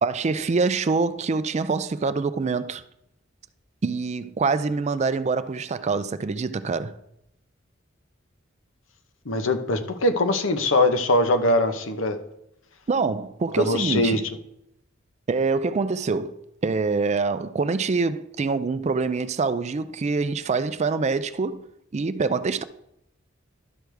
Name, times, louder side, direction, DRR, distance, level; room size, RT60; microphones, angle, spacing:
voice 1, 0.0-2.8 3.8-7.0 12.9-14.2 15.3-16.4 16.6-21.6 21.9-22.6, right 4 dB, 35° right, 0.4 m, -25 dB
voice 2, 9.3-12.2 13.6-14.2, left 2 dB, 75° left, 0.9 m, -22 dB
12.0 x 6.3 x 3.4 m
head